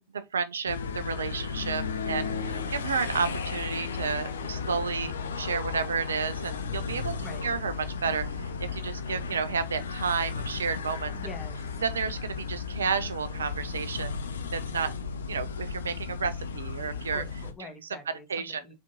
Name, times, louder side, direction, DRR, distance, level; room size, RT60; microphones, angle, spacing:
voice 1, 0.0-7.1 7.4-7.7 8.0-11.1 11.8-14.2 14.5-14.9 15.3-17.2 17.6-17.7 18.3-18.7, right 6 dB, 70° right, 0.4 m, -31 dB
sound 1, 0.7-17.5, left 5 dB, 65° left, 0.5 m, -34 dB
voice 2, 7.2-7.5 11.1-11.6 17.1-18.7, left 3 dB, 15° left, 1.0 m, -45 dB
3.6 x 3.5 x 2.6 m
figure-of-eight pair, 90°, 0 cm